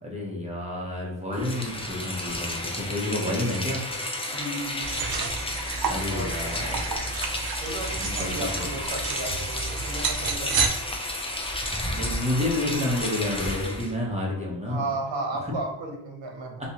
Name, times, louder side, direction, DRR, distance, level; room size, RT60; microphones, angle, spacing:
voice 1, 0.0-3.8 5.9-6.9 7.9-8.6 11.9-14.8 16.6-16.7, left 1 dB, 15° right, -3 dB, 0.9 m, -29 dB
Rain, 1.3-13.9, left 1 dB, 15° left, 0.4 m, -32 dB
voice 2, 4.3-5.3 6.0-6.8 7.6-10.8 14.6-16.6, right 2 dB, 80° right, 2 dB, 0.8 m, -34 dB
sound 1, 4.8-10.7, right 5 dB, 55° right, 0.5 m, -30 dB
3.1 x 2.8 x 2.8 m, 0.94 s
wide cardioid pair, 100°, 45 cm